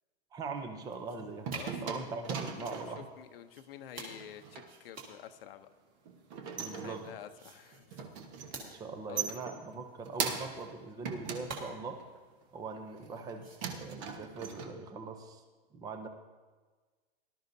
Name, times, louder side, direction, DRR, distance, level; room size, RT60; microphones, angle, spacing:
voice 1, 0.3-1.5 1.8-3.0 6.6-7.1 8.5-12.0 12.5-15.4 15.7-16.1, right 4 dB, 10° right, 6 dB, 0.6 m, -41 dB
sound 1, 0.6-13.7, right 3 dB, 25° right, 2.2 m, -52 dB
sound 2, 0.8-3.1 4.1-4.7 6.1-7.4 7.7-8.6 8.9-10.7 11.0-12.2 12.7-13.3 13.6-14.7, right 6 dB, 45° right, 1.3 m, -40 dB
voice 2, 1.5-2.2 2.6-5.7 6.7-8.1 9.1-9.2, left 10 dB, 65° left, 9 dB, 0.8 m, -49 dB
18.0 x 12.0 x 2.7 m, 1.4 s
hypercardioid pair, 150°, 31 cm